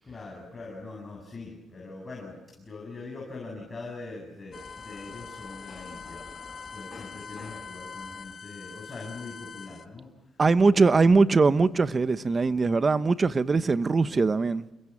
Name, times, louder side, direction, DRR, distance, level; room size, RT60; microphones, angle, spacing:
voice 1, 0.0-11.1, left 3 dB, 25° left, 7.6 m, -42 dB
sound 1, 4.5-9.9, left 5 dB, 40° left, 1.5 m, -43 dB
voice 2, 10.4-14.6, right 4 dB, 35° right, 1.0 m, -21 dB
28.0 x 22.0 x 7.4 m
cardioid pair, 90°, 0 cm